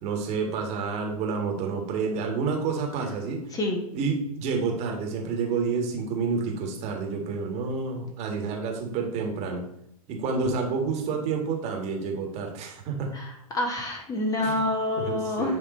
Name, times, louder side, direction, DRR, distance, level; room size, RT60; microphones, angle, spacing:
voice 1, 0.0-3.4 3.9-9.6 10.1-13.1 14.4-14.6 15.0-15.6, right 5 dB, 35° right, 2 dB, 1.6 m, -29 dB
voice 2, 13.1-15.6, left 1 dB, 20° left, 1 dB, 1.2 m, -27 dB
9.0 x 3.2 x 4.2 m, 0.80 s
figure-of-eight pair, 105°, 19 cm